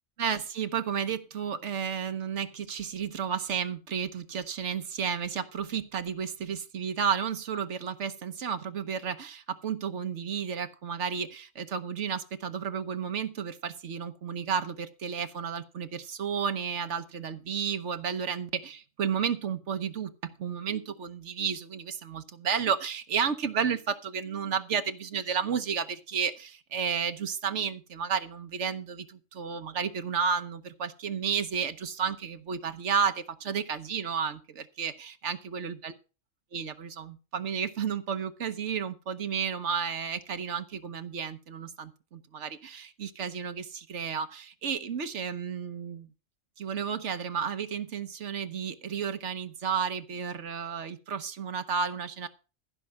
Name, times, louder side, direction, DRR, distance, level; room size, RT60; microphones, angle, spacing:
voice 1, 0.2-35.9 36.5-46.1 46.6-52.3, right 7 dB, 70° right, 10 dB, 1.3 m, -32 dB
15.0 x 5.7 x 6.3 m, 0.33 s
omnidirectional pair, 1.3 m